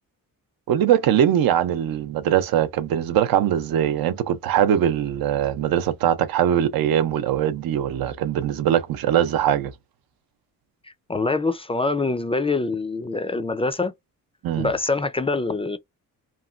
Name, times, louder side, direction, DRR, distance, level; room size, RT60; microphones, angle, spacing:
voice 1, 0.7-9.7 14.4-14.7, right 10 dB, 85° right, 0.6 m, -21 dB
voice 2, 11.1-13.9 14.6-15.8, left 3 dB, 15° left, 0.3 m, -24 dB
3.0 x 2.2 x 2.4 m
cardioid pair, 110°, 34 cm